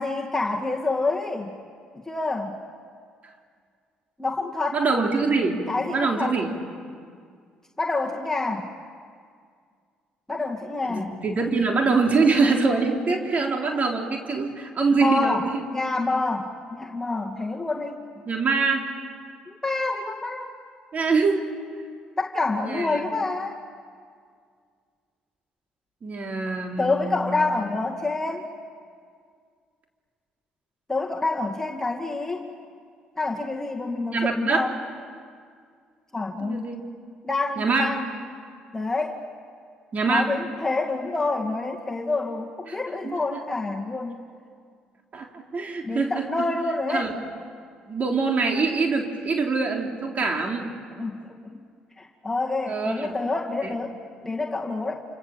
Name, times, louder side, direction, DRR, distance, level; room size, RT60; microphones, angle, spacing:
voice 1, 0.0-1.5 2.1-2.6 4.2-4.8 5.7-6.4 7.8-8.7 10.3-11.1 14.9-18.0 19.5-20.5 22.2-23.6 26.8-28.5 30.9-32.4 33.2-34.8 36.1-36.7 37.2-38.0 38.7-39.2 40.1-44.2 45.8-47.1 50.9-51.2 51.5-51.6 52.0-53.9 54.2-55.0, left 3 dB, 15° left, 0 dB, 2.2 m, -27 dB
voice 2, 4.7-5.6 5.9-6.5 10.9-15.6 18.3-18.9 20.9-21.4 22.6-23.1 26.0-27.4 34.1-34.7 36.4-36.8 37.6-38.0 39.9-40.3 42.7-42.8 43.0-43.2 45.1-46.3 46.9-47.1 47.9-50.7 52.7-53.1 53.6-53.7, right 4 dB, 45° right, 2 dB, 3.7 m, -24 dB
28.5 x 27.5 x 7.4 m, 2.1 s
hypercardioid pair, 60°, 4 cm